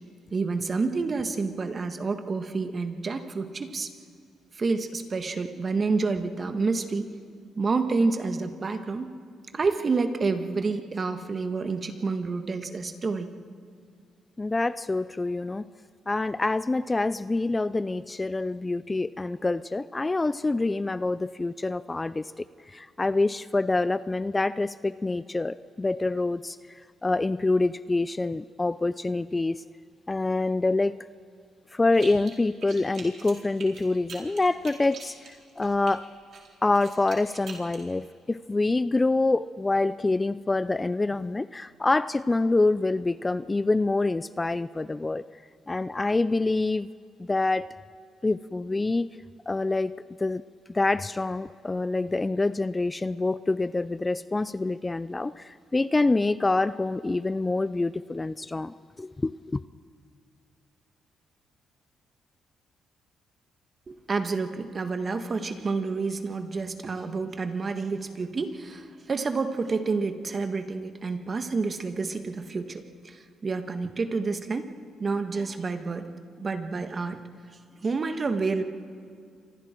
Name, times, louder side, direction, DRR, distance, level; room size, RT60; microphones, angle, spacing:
voice 1, 0.3-3.9 4.6-7.1 7.5-9.1 9.5-13.3 63.9-74.7 75.0-76.1 76.4-77.2 77.8-78.6, right 4 dB, 40° right, 1.7 m, -29 dB
voice 2, 14.4-15.6 16.1-22.3 22.7-29.6 30.1-30.9 31.7-36.1 36.6-45.2 45.7-46.9 47.2-47.7 48.2-49.1 49.5-49.9 50.2-50.4 50.7-59.6, left 2 dB, 20° left, 0.4 m, -26 dB
sound 1, 31.9-32.4 32.6-35.9 36.3-37.8, right 5 dB, 60° right, 4.6 m, -44 dB
29.0 x 25.0 x 4.5 m
cardioid pair, 80°, 0 cm